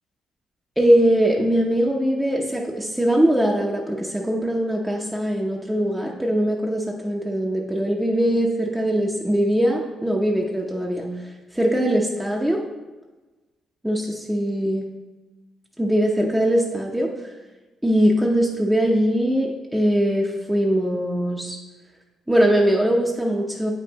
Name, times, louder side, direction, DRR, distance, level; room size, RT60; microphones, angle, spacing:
voice 1, 0.8-11.1 11.5-12.6 13.8-14.9 15.8-17.1 17.8-21.6 22.3-23.7, equal, 5° right, -2 dB, 0.8 m, -21 dB
8.1 x 5.4 x 2.9 m, 1.2 s
cardioid pair, 90°, 0 cm